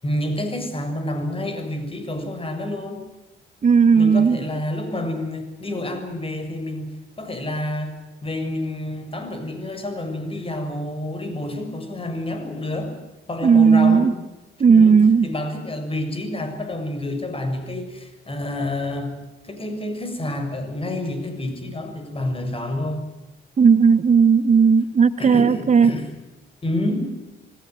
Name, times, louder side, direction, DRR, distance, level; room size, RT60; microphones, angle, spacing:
voice 1, 0.0-3.0 3.9-12.9 13.3-14.1 14.7-19.1 19.4-23.0 25.2-26.1 26.6-27.1, left 1 dB, 30° left, 8 dB, 6.7 m, -28 dB
voice 2, 3.6-4.4 13.4-14.1 14.6-15.3 23.6-25.9, right 6 dB, 35° right, 13 dB, 0.9 m, -15 dB
27.5 x 18.0 x 9.6 m, 1.0 s
cardioid pair, 90°, 20 cm